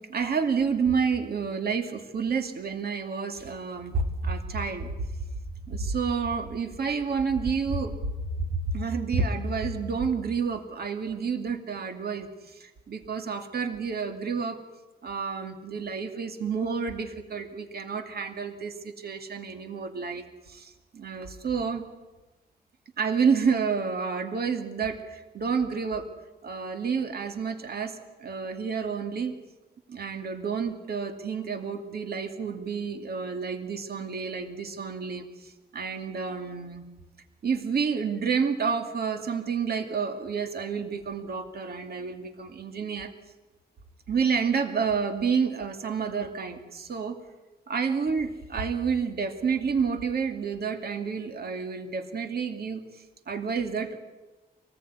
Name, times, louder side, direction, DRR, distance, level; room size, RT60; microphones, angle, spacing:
voice 1, 0.0-4.9 5.7-8.0 8.4-14.6 15.0-21.9 23.0-26.1 26.4-29.3 29.9-36.9 37.4-43.1 44.1-47.2 47.7-54.0, right 5 dB, 70° right, 6 dB, 2.4 m, -29 dB
26.5 x 19.5 x 9.6 m, 1.1 s
wide cardioid pair, 145°, 17 cm